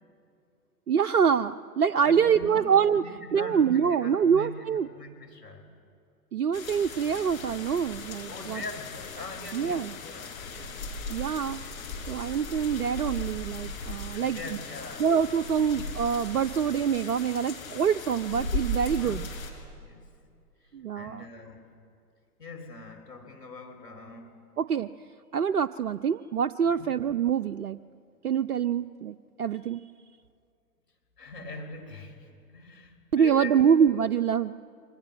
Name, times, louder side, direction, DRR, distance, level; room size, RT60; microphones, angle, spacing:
voice 1, 0.9-3.0 3.3-4.9 6.3-8.6 9.5-9.9 11.1-11.6 12.1-14.6 15.0-19.3 20.7-21.3 24.6-24.9 25.3-27.8 28.2-29.8 33.1-34.5, right 7 dB, 65° right, 9 dB, 0.7 m, -25 dB
voice 2, 2.0-5.7 8.3-10.8 14.1-15.1 15.6-15.9 18.9-19.3 19.8-20.1 20.7-21.6 22.4-24.3 26.7-26.9 31.2-33.9, left 3 dB, 75° left, 4 dB, 4.7 m, -42 dB
sound 1, 6.5-19.5, left 2 dB, 55° left, 6.1 m, -37 dB
28.0 x 25.0 x 7.5 m, 2.4 s
figure-of-eight pair, 115°, 48 cm